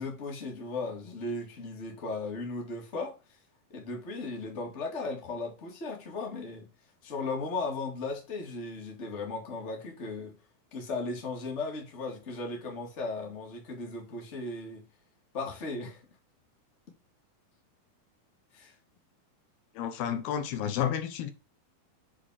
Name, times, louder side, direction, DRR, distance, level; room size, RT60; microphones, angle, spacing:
voice 1, 0.0-3.2 3.7-6.7 7.0-10.4 10.7-14.8 15.3-16.0 18.5-18.7, left 3 dB, 25° left, 1.8 m, -36 dB
voice 2, 19.7-21.3, left 9 dB, 80° left, 2.8 m, -31 dB
7.4 x 4.4 x 4.8 m
omnidirectional pair, 4.4 m